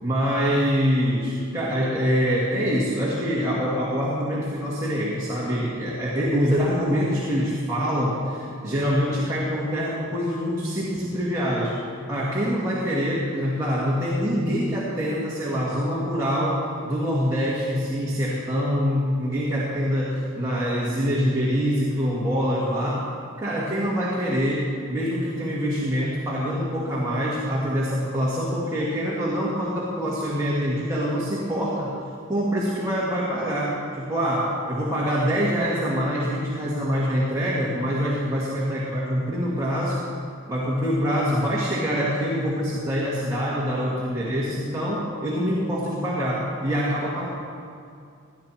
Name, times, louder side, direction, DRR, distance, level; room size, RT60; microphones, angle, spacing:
voice 1, 0.0-11.7 12.1-23.0 23.4-31.9 32.3-40.0 40.5-47.3, equal, 15° right, -8 dB, 2.1 m, -25 dB
18.5 x 11.5 x 4.4 m, 2.4 s
head